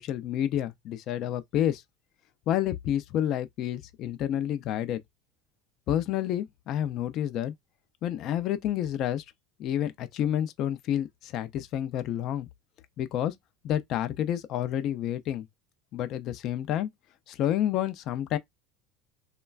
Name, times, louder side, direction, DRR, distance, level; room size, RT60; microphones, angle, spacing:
voice 1, 0.0-1.8 2.5-5.0 5.9-7.5 8.0-9.2 9.6-12.5 13.0-13.3 13.6-15.5 15.9-16.9 17.3-18.4, left 11 dB, 40° left, 0.3 m, -29 dB
3.2 x 2.2 x 2.2 m
cardioid pair, 165°, 0 cm